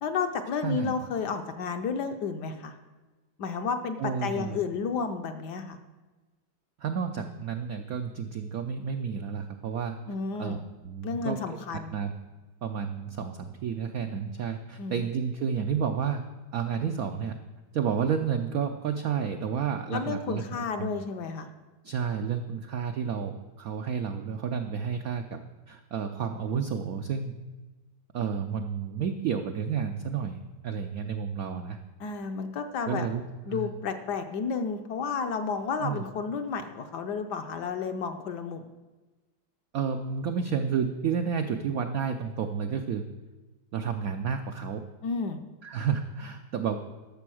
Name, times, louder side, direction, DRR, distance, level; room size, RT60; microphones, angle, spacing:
voice 1, 0.0-2.7 3.4-5.8 10.1-10.6 11.0-11.9 14.8-15.0 19.9-21.5 32.0-33.1 33.5-38.7 45.0-45.4, left 5 dB, 65° left, 7 dB, 1.1 m, -32 dB
voice 2, 0.6-0.9 4.0-4.6 6.8-10.0 10.4-10.6 10.8-11.4 11.7-12.1 12.6-16.2 16.5-17.4 17.7-20.4 20.8-20.9 21.8-25.4 25.7-27.4 28.1-31.8 32.9-33.2 33.5-33.7 35.8-36.0 39.7-43.0 43.7-44.8 45.6-46.8, right 7 dB, 85° right, 6 dB, 0.7 m, -31 dB
12.0 x 6.9 x 6.2 m, 1.2 s
omnidirectional pair, 2.3 m